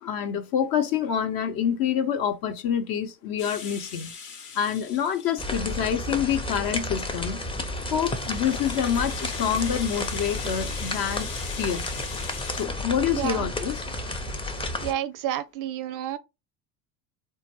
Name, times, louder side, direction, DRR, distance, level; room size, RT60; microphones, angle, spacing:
voice 1, 0.0-4.1 4.5-7.4 7.9-11.3 11.6-11.8 12.5-13.8, left 8 dB, 50° left, 0.8 m, -27 dB
Rattle (instrument), 3.4-6.4 6.9-12.7, left 6 dB, 80° left, 1.1 m, -40 dB
sound 1, 5.4-14.9, left 1 dB, 10° left, 0.5 m, -32 dB
voice 2, 13.1-13.5 14.8-16.2, right 11 dB, 45° right, 0.4 m, -30 dB
3.8 x 2.3 x 2.9 m
hypercardioid pair, 80°, 46 cm